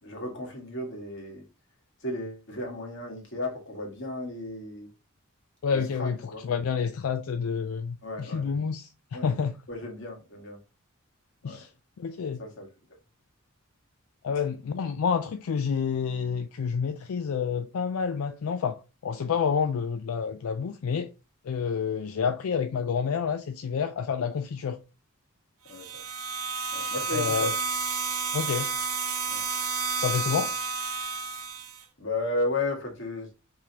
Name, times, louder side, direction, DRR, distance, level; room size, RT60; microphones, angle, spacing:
voice 1, 0.0-1.5 2.0-4.9 5.7-6.4 8.0-8.5 9.1-9.3 9.7-10.6 11.4-11.6 12.4-12.7 25.7-26.0 26.7-27.5 29.3-29.4 30.2-30.3 32.0-33.3, left 2 dB, 60° left, 1.7 m, -34 dB
voice 2, 5.6-6.2 6.4-9.5 11.4-11.7 12.0-12.4 14.2-21.1 21.4-24.8 27.1-27.5 28.3-28.7 30.0-30.6, left 6 dB, 85° left, 0.4 m, -29 dB
sound 1, 25.7-31.8, right 4 dB, 80° right, 0.8 m, -31 dB
4.8 x 3.6 x 2.8 m
head